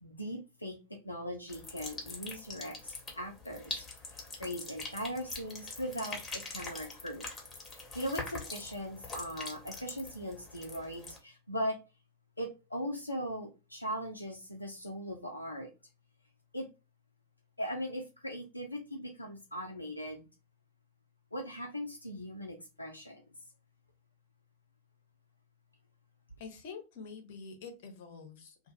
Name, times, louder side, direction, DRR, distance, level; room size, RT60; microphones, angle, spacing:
voice 1, 0.0-7.3 7.7-11.8 12.4-15.7 16.5-16.7 17.6-20.3 21.3-23.2, equal, 85° left, 0.6 m, -39 dB
sound 1, 1.5-11.2, left 3 dB, 20° left, 1.3 m, -44 dB
voice 2, 26.4-28.6, left 5 dB, 50° left, 1.0 m, -46 dB
2.6 x 2.4 x 4.0 m
figure-of-eight pair, 90°, 0 cm